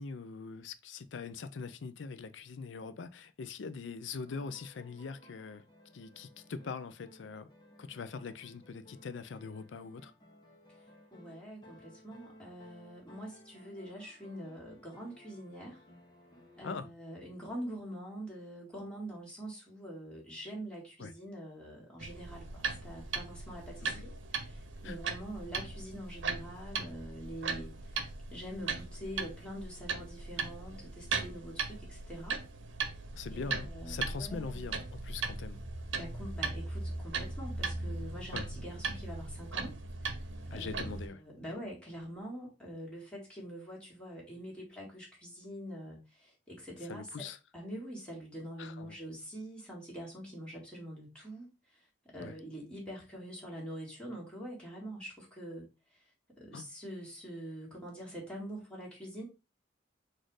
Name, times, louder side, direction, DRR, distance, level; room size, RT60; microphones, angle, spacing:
voice 1, 0.0-5.6 5.9-7.5 7.8-10.1 16.6-16.9 21.0-21.1 23.8-24.0 24.8-25.0 33.1-35.6 38.3-38.5 40.5-41.2 46.9-47.4 48.6-49.0 52.2-52.3 56.5-56.7, left 5 dB, 75° left, 0.4 m, -42 dB
sound 1, 4.2-16.7, equal, 25° left, 0.9 m, -59 dB
voice 2, 11.1-15.8 16.6-32.4 32.9-33.0 33.3-34.8 35.9-39.8 40.5-47.3 47.5-56.1 56.4-59.3, equal, 5° left, 1.7 m, -45 dB
sound 2, 22.0-41.1, right 4 dB, 85° right, 0.7 m, -38 dB
4.2 x 2.5 x 4.6 m
head